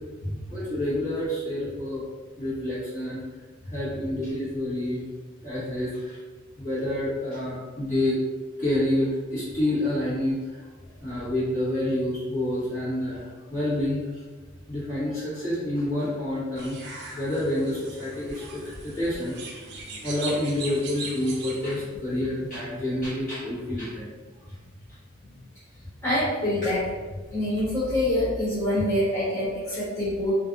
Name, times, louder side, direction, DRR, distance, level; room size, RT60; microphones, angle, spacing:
voice 1, 0.5-2.0 2.4-3.2 3.7-5.0 5.4-6.2 6.6-8.2 8.6-10.4 11.0-14.0 14.7-16.8 17.1-19.6 20.0-24.1, left 1 dB, 40° left, -11 dB, 1.2 m, -28 dB
sound 1, 16.6-21.9, right 3 dB, 55° right, 0.4 m, -39 dB
voice 2, 26.0-26.8 27.3-30.3, left 1 dB, 15° left, -14 dB, 0.8 m, -25 dB
2.5 x 2.3 x 2.5 m, 1.3 s
head